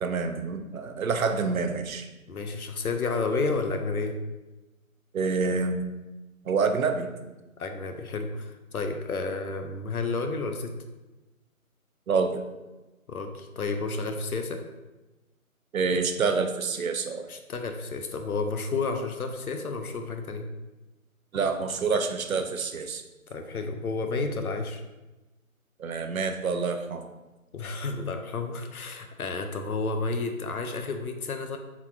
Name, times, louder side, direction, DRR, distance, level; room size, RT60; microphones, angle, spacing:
voice 1, 0.0-2.1 5.1-5.8 6.4-7.1 12.1-12.4 15.7-17.3 21.3-23.0 25.8-27.1, right 4 dB, 75° right, 6 dB, 0.6 m, -27 dB
voice 2, 2.3-4.1 7.6-10.7 13.1-14.6 17.3-20.5 23.3-24.8 27.5-31.6, left 3 dB, 90° left, 5 dB, 0.7 m, -31 dB
4.5 x 4.0 x 2.4 m, 1.1 s
figure-of-eight pair, 170°, 42 cm